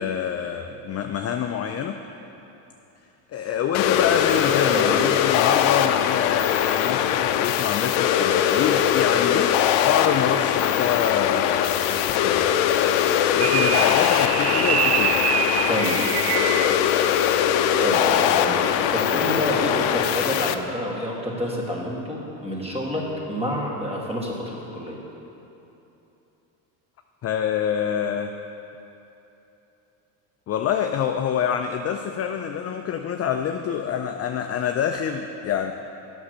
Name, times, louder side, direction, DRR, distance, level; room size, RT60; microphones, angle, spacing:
voice 1, 0.0-2.0 3.3-12.9 13.3-15.2 27.2-28.3 30.5-35.7, left 8 dB, 30° left, 5 dB, 0.4 m, -26 dB
sound 1, 3.7-20.5, left 10 dB, 70° left, 0.6 m, -21 dB
voice 2, 4.7-5.0 15.7-16.0 17.8-25.0, equal, 10° right, -3 dB, 2.1 m, -28 dB
sound 2, 13.4-16.9, right 7 dB, 30° right, 0.5 m, -25 dB
8.6 x 6.3 x 6.6 m, 3.0 s
supercardioid pair, 85°, 49 cm